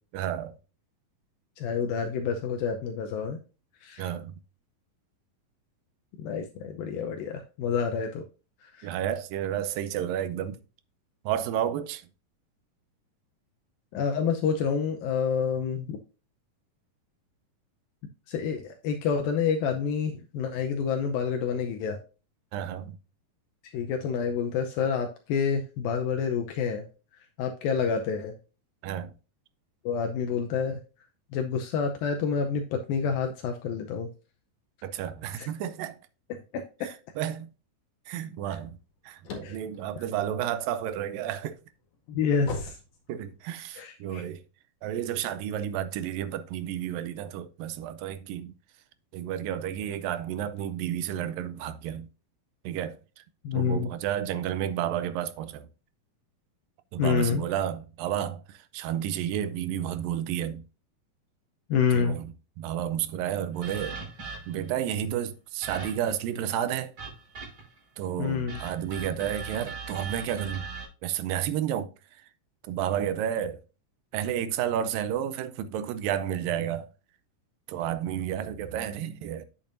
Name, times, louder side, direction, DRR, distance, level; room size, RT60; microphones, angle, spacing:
voice 1, 0.1-0.6 4.0-4.4 8.8-10.6 11.3-12.1 22.5-23.0 28.8-29.1 34.8-36.0 36.8-37.5 38.1-38.8 39.0-41.6 43.1-44.4 44.8-48.5 49.1-52.1 52.6-53.2 53.5-55.7 56.9-60.6 61.9-62.3 62.6-64.0 64.5-66.9 68.0-70.7 71.0-72.2 72.6-73.6 74.1-76.9 77.7-79.5, right 10 dB, 80° right, 2.2 m, -31 dB
voice 2, 1.6-3.4 3.8-4.1 6.2-8.2 8.6-8.9 13.9-16.0 18.3-22.0 23.7-26.8 27.4-28.3 29.9-30.8 31.3-34.1 35.4-35.5 36.3-36.9 38.5-38.6 39.4-39.6 42.1-42.8 43.7-44.2 53.4-53.9 57.0-57.4 61.7-62.2 68.2-68.6, left 6 dB, 80° left, 2.5 m, -28 dB
sound 1, 38.7-40.9 41.4-43.7, left 3 dB, 60° left, 3.2 m, -39 dB
sound 2, 63.6-64.7 65.6-66.2 67.0-67.8 68.5-70.9, right 4 dB, 35° right, 5.4 m, -39 dB
9.0 x 7.0 x 2.6 m
omnidirectional pair, 4.2 m